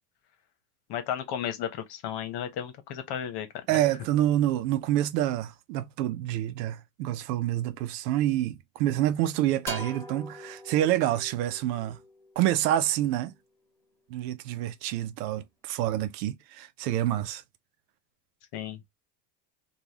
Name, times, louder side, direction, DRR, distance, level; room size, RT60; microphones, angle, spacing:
voice 1, 0.9-3.5 18.5-18.8, left 9 dB, 50° left, 1.2 m, -33 dB
voice 2, 3.7-12.0 12.4-13.3 14.1-17.4, right 13 dB, 75° right, 0.8 m, -27 dB
sound 1, 9.7-13.3, left 1 dB, 5° left, 1.6 m, -43 dB
3.5 x 2.6 x 2.9 m
supercardioid pair, 95°, 49 cm